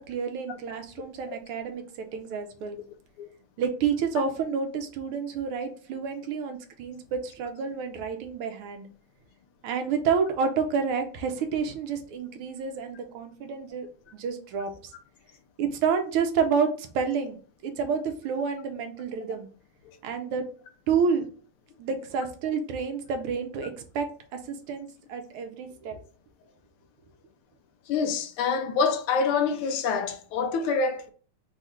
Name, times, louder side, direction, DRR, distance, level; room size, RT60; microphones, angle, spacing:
voice 1, 0.0-2.8 3.6-8.9 9.6-13.9 14.1-14.9 15.6-17.4 17.6-19.5 20.0-20.5 20.9-21.3 21.8-26.0, right 6 dB, 85° right, 1.6 m, -29 dB
voice 2, 27.9-31.1, left 5 dB, 80° left, 1.5 m, -26 dB
4.2 x 2.3 x 4.3 m
omnidirectional pair, 2.4 m